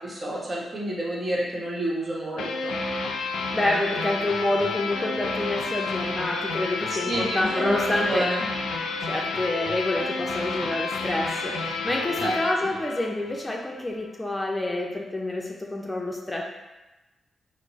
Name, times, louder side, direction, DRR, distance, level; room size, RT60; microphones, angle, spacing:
voice 1, 0.2-2.8 6.9-7.8 8.1-8.4 12.2-12.4, right 1 dB, 45° right, -5 dB, 1.1 m, -29 dB
sound 1, 2.4-13.6, left 4 dB, 90° left, 0.3 m, -30 dB
voice 2, 3.5-8.3 9.0-16.4, left 1 dB, 15° left, -1 dB, 0.5 m, -28 dB
4.3 x 2.1 x 3.0 m, 1.1 s
cardioid pair, 55°, 0 cm